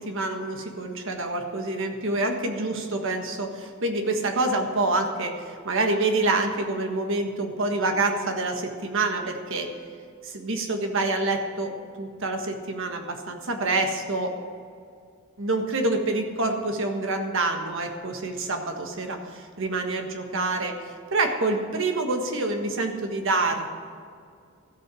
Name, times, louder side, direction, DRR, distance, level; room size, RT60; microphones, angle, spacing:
voice 1, 0.0-9.7 10.2-11.7 12.0-14.3 15.4-23.8, right 2 dB, 65° right, 4 dB, 1.5 m, -27 dB
14.0 x 8.0 x 6.3 m, 2.3 s
head